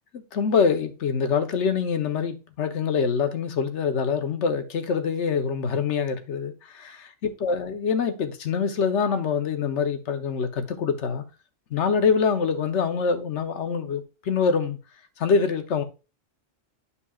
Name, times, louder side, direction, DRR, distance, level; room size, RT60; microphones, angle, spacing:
voice 1, 0.1-11.2 11.7-14.8 15.2-15.8, left 6 dB, 70° left, 1.1 m, -25 dB
11.0 x 5.6 x 2.3 m
omnidirectional pair, 1.3 m